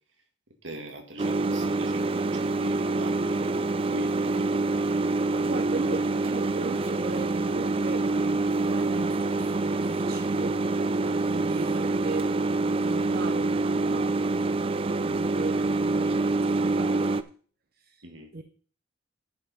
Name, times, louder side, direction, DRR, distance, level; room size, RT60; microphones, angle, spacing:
voice 1, 0.6-4.4 12.4-12.5 18.0-18.3, equal, 85° right, 4 dB, 2.0 m, -42 dB
sound 1, 1.2-17.2, right 3 dB, 30° right, 0.4 m, -26 dB
voice 2, 5.3-10.6 11.2-14.2 14.7-17.1 17.8-18.0 18.3-18.4, right 3 dB, 55° right, 6 dB, 0.8 m, -37 dB
10.5 x 5.1 x 5.4 m, 0.43 s
head